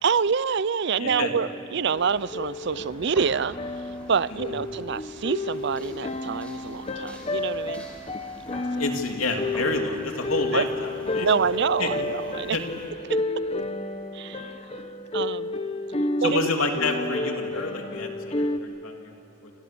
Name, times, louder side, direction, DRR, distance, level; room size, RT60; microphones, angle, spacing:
voice 1, 0.0-3.5 4.1-7.9 10.5-10.7 11.2-12.6 13.1-13.2 14.1-14.6 15.1-15.6 16.2-16.5, right 6 dB, 55° right, 18 dB, 0.5 m, -26 dB
voice 2, 1.0-1.3 8.8-10.7 11.1-11.3 11.8-11.9 12.5-12.6 16.2-19.1 19.4-19.5, left 3 dB, 90° left, 3 dB, 3.0 m, -28 dB
sound 1, 1.0-18.6, left 2 dB, 30° left, 1.1 m, -31 dB
sound 2, 1.9-12.9, equal, 5° left, 4.6 m, -47 dB
27.5 x 27.5 x 6.9 m, 3.0 s
head